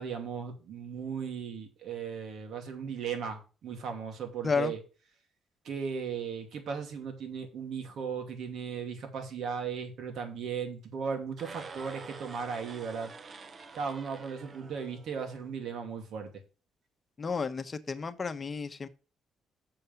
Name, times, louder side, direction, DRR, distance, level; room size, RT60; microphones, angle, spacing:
voice 1, 0.0-4.8 5.6-13.1 13.7-16.4, right 6 dB, 70° right, 2.5 m, -37 dB
sound 1, 11.3-15.5, right 4 dB, 40° right, 1.0 m, -47 dB
voice 2, 17.2-18.9, left 5 dB, 35° left, 1.1 m, -32 dB
6.9 x 5.4 x 7.3 m
cardioid pair, 90°, 0 cm